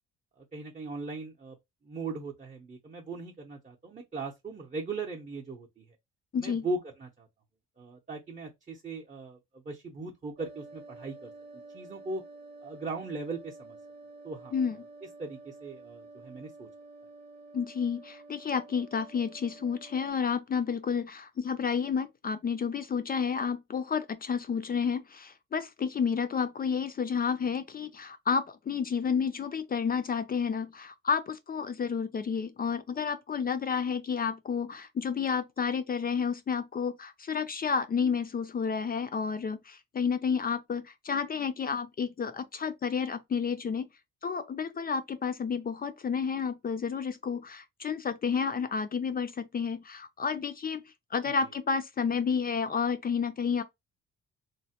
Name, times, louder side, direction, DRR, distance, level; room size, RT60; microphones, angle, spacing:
voice 1, 0.4-1.6 1.8-5.8 6.4-7.3 7.8-11.3 11.7-12.2 12.6-13.8 14.2-14.5 15.2-16.7, right 3 dB, 25° right, 0.7 m, -39 dB
voice 2, 6.3-6.7 14.5-14.8 17.5-43.9 44.2-50.8 51.1-53.6, left 6 dB, 30° left, 0.4 m, -31 dB
sound 1, 10.4-20.1, right 2 dB, 60° right, 0.6 m, -50 dB
3.0 x 2.1 x 2.8 m
cardioid pair, 90°, 30 cm